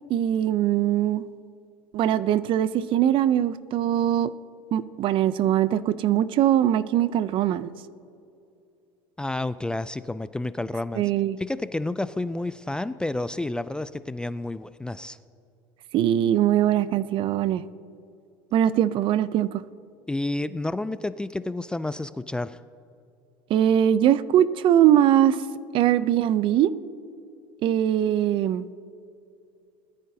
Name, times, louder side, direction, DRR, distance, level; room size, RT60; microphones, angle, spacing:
voice 1, 0.1-1.2 1.9-4.3 4.7-7.7 11.0-11.4 15.9-17.6 18.5-19.6 23.5-25.4 25.7-26.7 27.6-28.6, right 11 dB, 50° right, 16 dB, 0.5 m, -21 dB
voice 2, 9.2-11.0 11.4-15.2 20.1-22.6, left 2 dB, 10° left, 14 dB, 0.3 m, -30 dB
21.0 x 13.5 x 2.8 m, 2.5 s
supercardioid pair, 100°, 11 cm